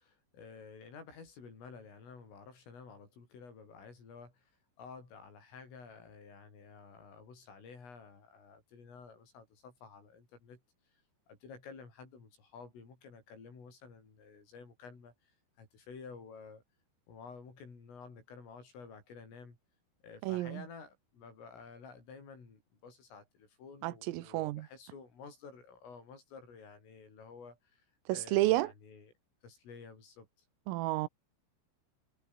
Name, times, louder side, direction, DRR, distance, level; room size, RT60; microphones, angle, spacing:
voice 1, 0.0-4.5 4.8-10.6 10.9-11.0 11.3-16.6 17.1-19.6 20.0-27.9 28.1-29.1 29.4-30.3, left 5 dB, 75° left, 10.5 m, -52 dB
voice 2, 20.2-20.6 23.8-24.7 28.1-28.7 30.7-31.1, right 18 dB, 85° right, 3.7 m, -31 dB
omnidirectional pair, 5.9 m